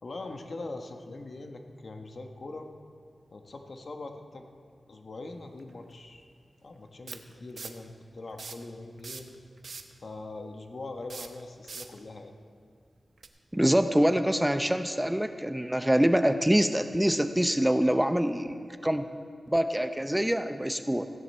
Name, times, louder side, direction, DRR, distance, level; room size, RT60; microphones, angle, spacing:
voice 1, 0.0-2.7 3.3-4.5 4.9-6.2 6.6-9.4 10.0-12.3, left 2 dB, 65° left, 5 dB, 1.2 m, -42 dB
sound 1, 5.6-5.7 7.1-7.9 8.3-8.7 9.0-10.0 11.0-12.0 13.2-13.3, right 4 dB, 75° right, 0.8 m, -42 dB
voice 2, 13.5-19.1 19.5-21.1, equal, 10° right, 9 dB, 0.6 m, -25 dB
15.5 x 10.5 x 4.3 m, 2.3 s
cardioid pair, 50°, 0 cm